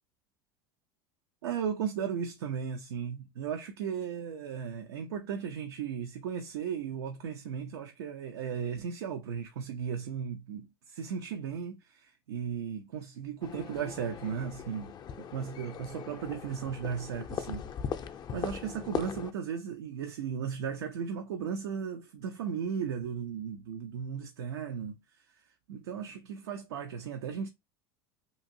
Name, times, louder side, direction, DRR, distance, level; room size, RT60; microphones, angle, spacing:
voice 1, 1.4-17.7 18.3-25.0 25.7-27.5, right 7 dB, 85° right, 0.5 m, -36 dB
sound 1, 13.4-19.3, left 7 dB, 35° left, 0.4 m, -39 dB
2.8 x 2.6 x 2.5 m
hypercardioid pair, 95°, 13 cm